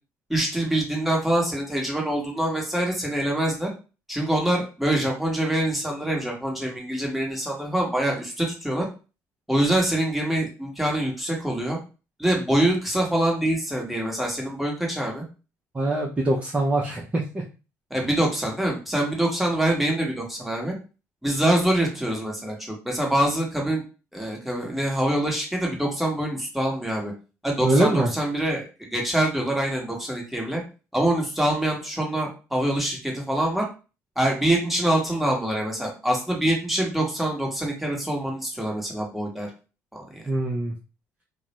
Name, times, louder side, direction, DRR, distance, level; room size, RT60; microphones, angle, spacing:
voice 1, 0.3-3.7 4.1-8.9 9.5-11.8 12.2-15.2 17.9-20.7 21.2-23.8 24.1-27.1 27.4-30.6 30.9-33.6 34.2-39.5 39.9-40.3, right 1 dB, ahead, -1 dB, 1.0 m, -25 dB
voice 2, 15.7-17.4 27.6-28.1 40.3-40.7, right 1 dB, 20° right, -3 dB, 0.5 m, -23 dB
2.4 x 2.0 x 2.9 m, 0.32 s
supercardioid pair, 90°, 7 cm